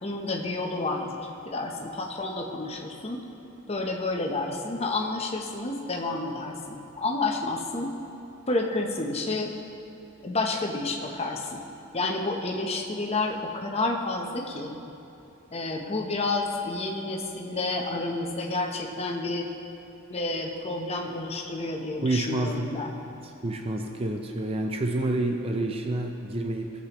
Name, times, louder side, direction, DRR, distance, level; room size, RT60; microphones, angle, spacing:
voice 1, 0.0-3.2 3.7-7.9 8.5-9.5 10.2-11.6 11.9-14.8 15.5-19.5 20.1-23.0, left 2 dB, 30° left, 1 dB, 0.8 m, -30 dB
voice 2, 22.0-22.7 23.4-26.7, right 2 dB, 25° right, 3 dB, 0.5 m, -28 dB
16.5 x 7.5 x 3.0 m, 2.8 s
head